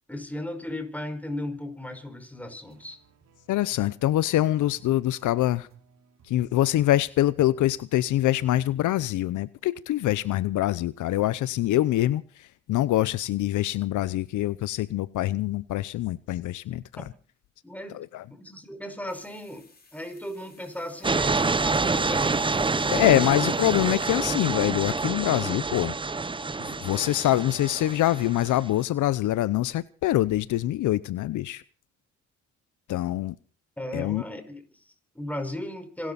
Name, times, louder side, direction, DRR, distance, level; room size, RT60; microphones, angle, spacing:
voice 1, 0.1-3.0 17.0-17.1 17.6-18.0 18.4-22.5 22.8-23.1 33.8-36.1, left 1 dB, 5° left, 5.2 m, -36 dB
sound 1, 2.6-7.8 8.2-8.6, right 5 dB, 60° right, 4.0 m, -58 dB
voice 2, 3.5-5.7 6.3-16.8 17.9-18.2 22.9-25.9 26.7-31.6 32.9-33.3 33.9-34.2, left 14 dB, 75° left, 0.8 m, -25 dB
sound 2, 19.1-24.5, left 4 dB, 30° left, 7.4 m, -58 dB
sound 3, 21.0-28.7, right 3 dB, 15° right, 0.7 m, -27 dB
26.5 x 12.5 x 4.1 m
cardioid pair, 90°, 30 cm